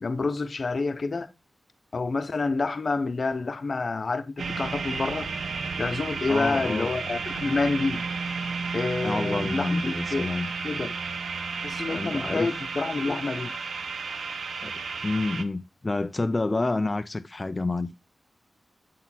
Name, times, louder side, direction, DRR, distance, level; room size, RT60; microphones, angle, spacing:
voice 1, 0.0-1.3 1.9-5.3 5.8-8.0 8.7-10.3 10.6-10.9 11.6-13.5, left 3 dB, 45° left, 0.7 m, -28 dB
sound 1, 4.4-15.4, right 4 dB, 85° right, 0.7 m, -32 dB
voice 2, 6.3-6.9 9.0-10.5 11.9-12.5 14.6-17.9, left 2 dB, 25° left, 0.3 m, -29 dB
8.3 x 4.0 x 4.2 m
wide cardioid pair, 125°, 0 cm